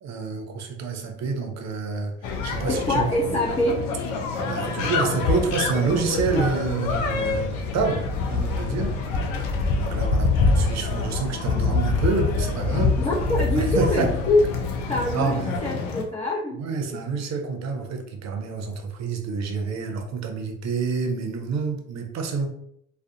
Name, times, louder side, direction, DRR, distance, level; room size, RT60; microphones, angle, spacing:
voice 1, 0.0-3.1 4.4-9.0 9.8-13.0 13.5-14.1 15.1-15.6 16.5-22.5, right 4 dB, 50° right, 3 dB, 0.6 m, -28 dB
sound 1, 2.2-16.0, left 4 dB, 75° left, 0.5 m, -25 dB
voice 2, 2.7-3.8 13.0-14.4 14.9-15.4 15.6-16.6 16.9-17.0, left 1 dB, 15° left, -7 dB, 0.7 m, -24 dB
2.3 x 2.1 x 2.7 m, 0.73 s
hypercardioid pair, 55°, 35 cm